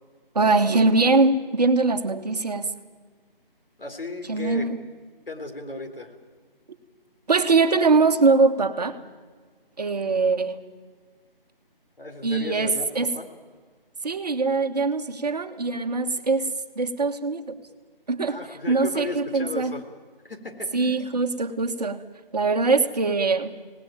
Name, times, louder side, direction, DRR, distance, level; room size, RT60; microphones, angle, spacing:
voice 1, 0.3-2.7 4.3-4.8 7.3-9.0 9.8-10.6 12.2-13.1 14.0-17.5 18.1-18.4 18.7-19.7 20.7-22.0 22.3-23.5, right 3 dB, 45° right, 7 dB, 1.5 m, -22 dB
voice 2, 3.8-4.7 5.3-6.1 12.0-13.3 18.2-19.8 20.2-21.0, left 2 dB, 70° left, 5 dB, 3.8 m, -35 dB
26.0 x 18.5 x 9.1 m, 1.5 s
figure-of-eight pair, 165°, 29 cm